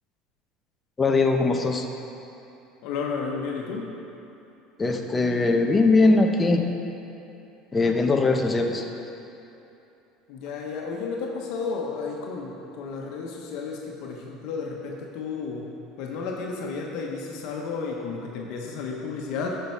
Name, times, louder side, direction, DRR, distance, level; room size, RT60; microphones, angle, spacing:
voice 1, 1.0-1.9 4.8-6.6 7.7-8.9, left 3 dB, 20° left, 3 dB, 0.9 m, -21 dB
voice 2, 2.8-3.9 10.3-19.6, left 4 dB, 65° left, -1 dB, 1.2 m, -32 dB
12.0 x 5.8 x 4.7 m, 2.9 s
supercardioid pair, 105°, 0 cm